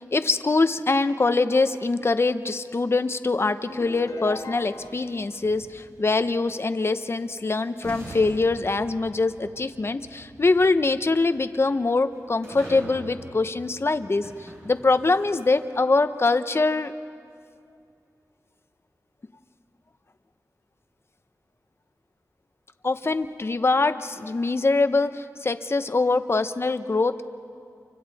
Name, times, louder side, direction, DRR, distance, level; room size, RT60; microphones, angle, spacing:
voice 1, 0.0-16.9 22.8-27.2, left 3 dB, 40° left, 10 dB, 0.8 m, -23 dB
sound 1, 3.7-5.2, left 3 dB, 65° left, 1.2 m, -38 dB
sound 2, 3.7-6.0 7.3-7.4 7.8-15.3, right 1 dB, 50° right, 6.5 m, -44 dB
30.0 x 25.0 x 4.2 m, 2.4 s
wide cardioid pair, 70°, 6 cm